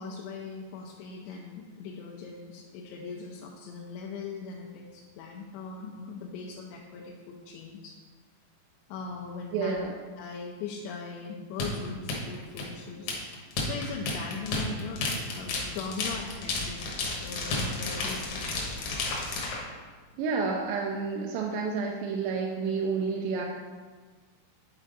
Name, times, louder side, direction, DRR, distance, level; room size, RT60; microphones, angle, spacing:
voice 1, 0.0-8.0 8.9-9.8 10.2-13.2 13.4-15.1 15.4-16.8 17.2-18.9, left 5 dB, 90° left, -1 dB, 2.8 m, -40 dB
voice 2, 9.5-9.9 20.2-23.5, right 4 dB, 85° right, 0 dB, 2.7 m, -30 dB
sound 1, 11.6-19.6, left 3 dB, 70° left, 1.8 m, -32 dB
9.2 x 4.4 x 3.9 m, 1.4 s
omnidirectional pair, 4.9 m